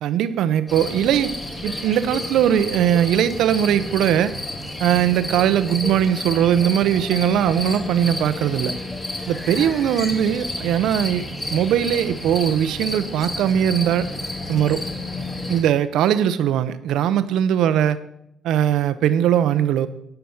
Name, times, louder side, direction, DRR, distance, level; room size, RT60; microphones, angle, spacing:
voice 1, 0.0-1.3 1.6-4.3 4.8-8.7 9.3-14.1 14.5-14.9 15.5-18.0 18.4-19.9, right 10 dB, 85° right, 13 dB, 0.7 m, -20 dB
sound 1, 0.7-15.6, left 1 dB, 20° left, 2.4 m, -31 dB
11.5 x 5.9 x 7.2 m, 0.78 s
cardioid pair, 90°, 0 cm